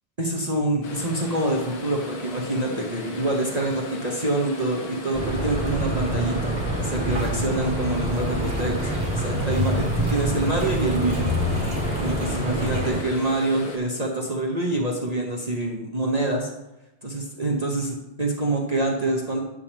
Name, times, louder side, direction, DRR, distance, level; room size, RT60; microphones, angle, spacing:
voice 1, 0.2-11.3 12.0-16.5 17.0-19.4, right 2 dB, 65° right, -1 dB, 0.4 m, -26 dB
sound 1, 0.8-13.8, left 4 dB, 70° left, 1.9 m, -38 dB
sound 2, 5.1-13.0, right 1 dB, 30° right, 1.7 m, -26 dB
10.5 x 3.5 x 7.2 m, 0.97 s
omnidirectional pair, 2.3 m